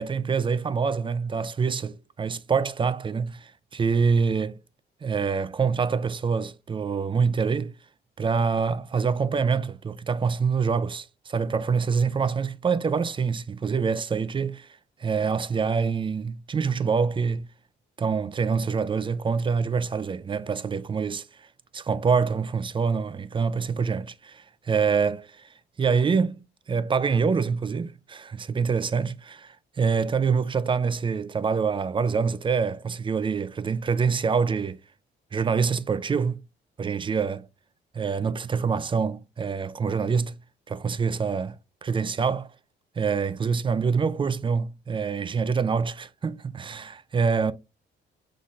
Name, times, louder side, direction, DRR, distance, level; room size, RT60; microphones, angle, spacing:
voice 1, 0.0-4.6 5.0-7.7 8.2-14.7 15.0-17.5 18.0-21.3 21.7-25.4 25.8-26.4 26.7-34.8 35.3-36.4 36.8-37.5 37.9-40.3 40.7-41.5 41.8-42.5 43.0-47.5, right 5 dB, 25° right, 0.4 m, -25 dB
5.5 x 4.0 x 2.5 m
cardioid pair, 90°, 20 cm